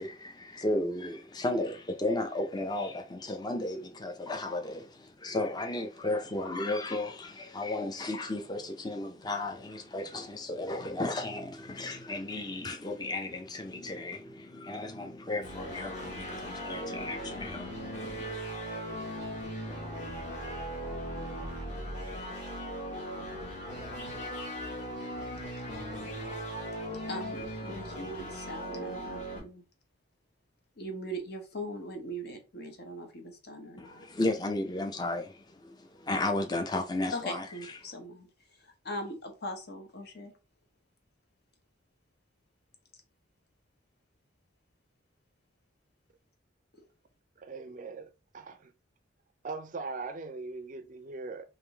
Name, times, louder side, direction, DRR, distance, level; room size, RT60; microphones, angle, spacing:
voice 1, 0.0-18.3 33.8-37.8, left 2 dB, 20° left, 0.6 m, -34 dB
sound 1, 15.4-29.4, equal, 40° left, 1.3 m, -38 dB
voice 2, 27.1-29.6 30.8-34.1 37.1-38.3 38.8-40.3, equal, 55° left, 0.9 m, -40 dB
voice 3, 47.4-48.7 49.4-51.4, right 3 dB, 45° right, 0.4 m, -40 dB
3.6 x 2.6 x 3.4 m
head